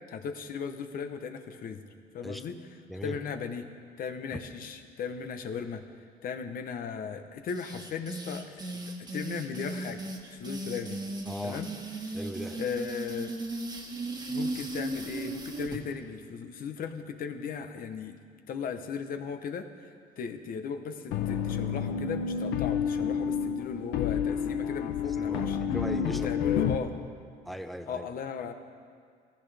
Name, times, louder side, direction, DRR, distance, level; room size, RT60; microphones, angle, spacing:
voice 1, 0.1-1.9 2.1-2.5 3.0-3.7 4.0-5.8 6.2-11.0 11.4-11.7 12.1-12.2 12.6-13.3 14.3-18.2 18.5-25.6 26.1-26.9 27.9-28.5, left 6 dB, 60° left, 7 dB, 1.0 m, -37 dB
sound 1, 7.5-15.8, right 2 dB, 25° right, 1.5 m, -36 dB
voice 2, 11.3-11.6 12.1-12.6 25.1-26.6 27.4-28.1, equal, ahead, 7 dB, 0.8 m, -38 dB
sound 2, 21.1-26.7, left 7 dB, 85° left, 0.8 m, -29 dB
16.5 x 15.0 x 3.4 m, 2.1 s
cardioid pair, 110°, 17 cm